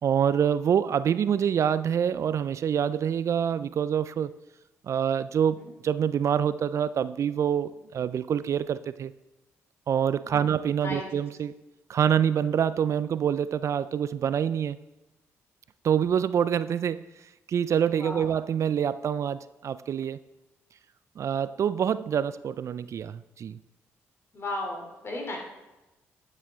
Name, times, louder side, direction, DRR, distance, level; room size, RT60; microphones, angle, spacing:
voice 1, 0.0-4.3 4.8-9.1 9.9-11.5 11.9-14.8 15.8-17.1 17.5-20.2 21.2-23.6, right 8 dB, 55° right, 16 dB, 0.3 m, -26 dB
voice 2, 24.3-25.4, left 2 dB, 45° left, 0 dB, 2.8 m, -35 dB
9.7 x 7.4 x 3.5 m, 1.0 s
supercardioid pair, 55°, 6 cm